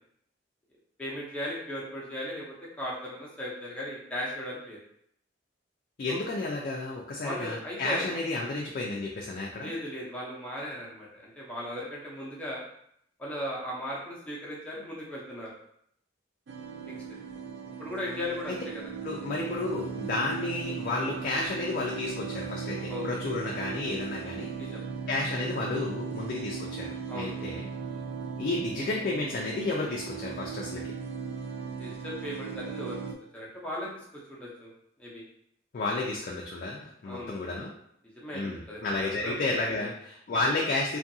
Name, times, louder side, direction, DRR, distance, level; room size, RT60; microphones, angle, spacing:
voice 1, 1.0-4.8 6.1-6.2 7.2-8.2 9.6-12.6 13.2-15.5 16.9-17.0 17.8-18.6 22.9-23.1 24.6-24.8 27.1-27.4 31.8-33.0 33.3-33.9 34.3-34.7 35.0-35.2 37.0-37.3 38.1-38.9 39.2-39.3, left 1 dB, 5° left, -5 dB, 0.6 m, -37 dB
voice 2, 6.0-9.7 18.5-18.6 19.0-24.5 25.1-27.7 28.4-30.8 35.7-37.7 38.3-41.0, left 2 dB, 50° left, -2 dB, 0.3 m, -32 dB
sound 1, 16.5-33.1, right 6 dB, 65° right, 0.3 m, -38 dB
2.6 x 2.5 x 2.6 m, 0.71 s
head